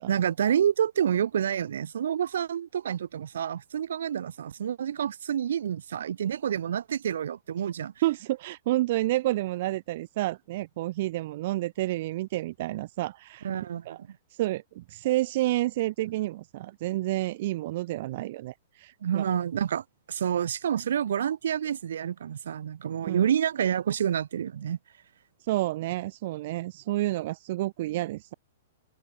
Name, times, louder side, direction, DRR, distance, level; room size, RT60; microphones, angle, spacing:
voice 1, 0.1-7.9 13.4-13.8 19.0-24.8, right 9 dB, 80° right, 1.3 m, -28 dB
voice 2, 8.0-13.5 13.9-14.0 14.3-19.3 23.0-23.3 25.4-28.3, right 17 dB, 45° right, 0.3 m, -29 dB
hypercardioid pair, 165°, 0 cm